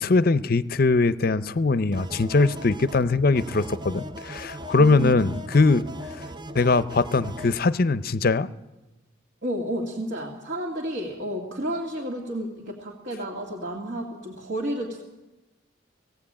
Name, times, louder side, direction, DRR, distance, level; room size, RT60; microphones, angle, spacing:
voice 1, 0.0-5.9 6.5-8.5, left 3 dB, 50° left, 15 dB, 0.6 m, -21 dB
sound 1, 1.9-7.6, equal, 25° right, 0.6 m, -39 dB
voice 2, 4.7-5.3 9.4-15.0, right 1 dB, 60° right, -1 dB, 2.2 m, -31 dB
17.5 x 17.0 x 8.7 m, 1.1 s
head